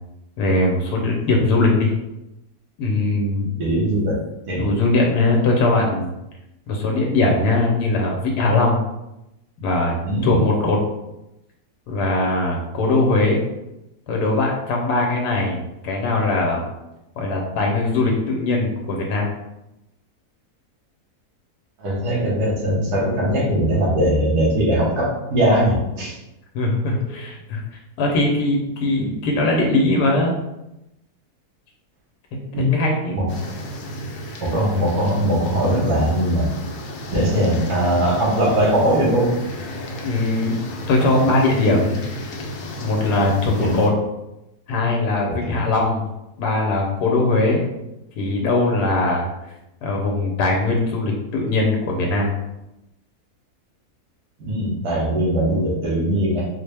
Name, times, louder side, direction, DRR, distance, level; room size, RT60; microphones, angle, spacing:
voice 1, 0.4-1.9 2.8-3.5 4.6-6.1 6.7-8.8 9.6-9.9 10.2-10.8 11.9-13.4 14.1-16.6 17.2-19.2 26.5-27.6 28.0-30.4 32.3-33.2 37.2-37.3 40.0-40.6 40.9-42.0 42.8-43.9 44.7-46.1 46.4-47.7 48.2-49.3 49.8-52.3, left 2 dB, 85° left, 0 dB, 1.2 m, -20 dB
voice 2, 3.6-4.2 4.5-4.7 10.1-10.4 21.8-26.1 32.5-32.7 33.1-33.3 34.4-36.5 37.1-39.4 43.6-43.7 45.3-45.5 54.4-56.5, equal, 75° right, -4 dB, 1.6 m, -20 dB
sound 1, 33.3-43.9, equal, 70° left, 0.9 m, -33 dB
4.1 x 2.1 x 3.3 m, 0.90 s
omnidirectional pair, 1.7 m